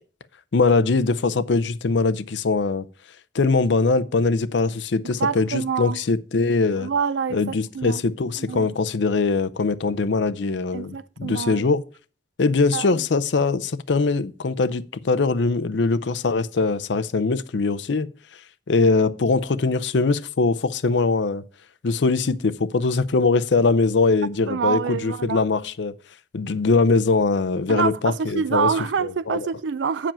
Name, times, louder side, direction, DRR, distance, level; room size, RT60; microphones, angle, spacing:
voice 1, 0.5-2.9 3.3-6.9 7.3-11.8 12.4-18.1 18.7-21.4 21.8-25.9 26.3-28.7 29.0-29.4, left 3 dB, 65° left, 0.6 m, -22 dB
voice 2, 5.0-6.0 6.8-8.0 8.5-8.7 10.7-11.7 12.7-13.0 24.5-25.5 27.7-30.1, right 6 dB, 70° right, 0.4 m, -26 dB
8.9 x 5.0 x 5.5 m
head